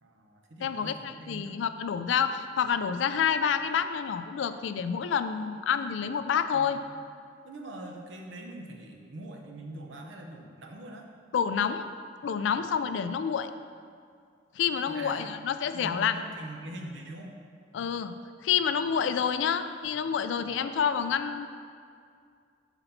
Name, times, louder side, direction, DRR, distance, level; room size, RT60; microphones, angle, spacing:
voice 1, 0.0-1.6 6.5-7.0 7.4-11.1 14.9-15.4 15.7-17.3 20.4-20.7, right 1 dB, 70° right, 2 dB, 0.8 m, -43 dB
voice 2, 0.6-6.8 11.3-11.9 12.2-13.5 14.6-16.1 17.7-18.1 18.4-21.5, left 7 dB, 70° left, 10 dB, 0.3 m, -28 dB
5.8 x 4.0 x 5.6 m, 2.2 s
head